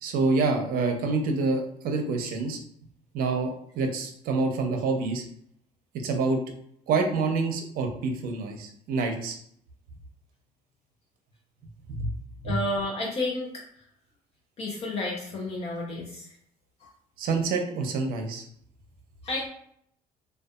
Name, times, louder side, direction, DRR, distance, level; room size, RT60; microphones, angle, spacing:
voice 1, 0.0-2.6 3.1-5.2 6.0-6.4 6.9-9.4 11.9-12.1 12.4-12.6 17.2-18.4, right 3 dB, 70° right, 4 dB, 0.6 m, -27 dB
voice 2, 12.4-13.5 14.6-16.3 19.2-19.5, left 2 dB, 40° left, -2 dB, 0.5 m, -31 dB
2.6 x 2.3 x 2.3 m, 0.68 s
cardioid pair, 120°, 16 cm